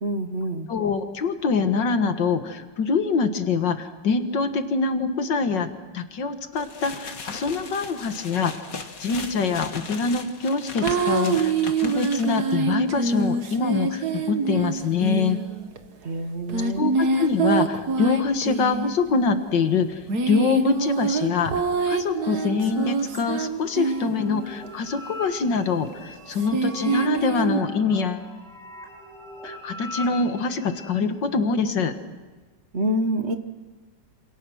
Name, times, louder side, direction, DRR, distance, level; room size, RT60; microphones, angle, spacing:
voice 1, 0.0-0.7 16.0-16.9 32.7-33.4, right 1 dB, 40° right, 8 dB, 1.4 m, -26 dB
voice 2, 0.7-5.7 5.9-8.5 9.0-15.4 16.7-28.3 29.4-31.9, left 4 dB, 75° left, 8 dB, 2.2 m, -25 dB
sound 1, 6.5-12.5, left 4 dB, 50° left, 2.0 m, -37 dB
sound 2, 10.8-15.8 16.5-19.0 19.9-24.5 26.3-27.6, right 4 dB, 60° right, 2.0 m, -25 dB
sound 3, 20.6-30.9, left 1 dB, ahead, 5.3 m, -42 dB
27.5 x 27.0 x 6.4 m, 1.3 s
omnidirectional pair, 2.0 m